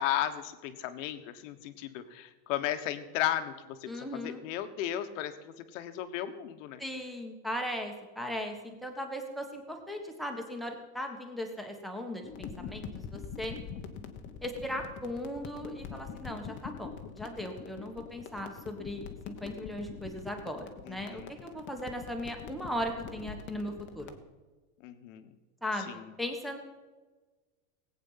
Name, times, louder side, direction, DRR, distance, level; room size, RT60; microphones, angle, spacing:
voice 1, 0.0-6.8 20.8-21.3 24.8-25.3 25.9-26.1, left 12 dB, 55° left, 9 dB, 1.4 m, -35 dB
voice 2, 3.9-4.4 6.8-13.6 14.4-24.1 25.6-26.6, equal, ahead, 2 dB, 1.4 m, -38 dB
sound 1, 12.2-24.2, left 7 dB, 25° left, 1.1 m, -44 dB
18.5 x 8.8 x 5.7 m, 1.3 s
supercardioid pair, 160°, 44 cm